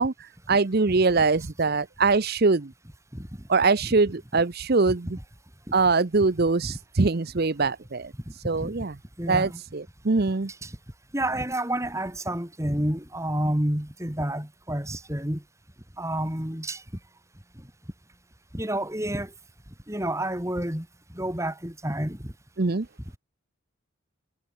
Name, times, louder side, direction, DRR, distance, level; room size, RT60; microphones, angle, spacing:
voice 1, 0.0-2.7 3.5-5.2 5.7-8.1 8.4-8.9 9.3-10.5 22.6-22.9, right 3 dB, 45° right, 0.7 m, -23 dB
voice 2, 9.2-9.6 10.6-10.7 11.1-15.4 16.0-16.8 18.5-19.3 19.9-20.9 21.1-22.3, right 1 dB, 15° right, 3.6 m, -29 dB
head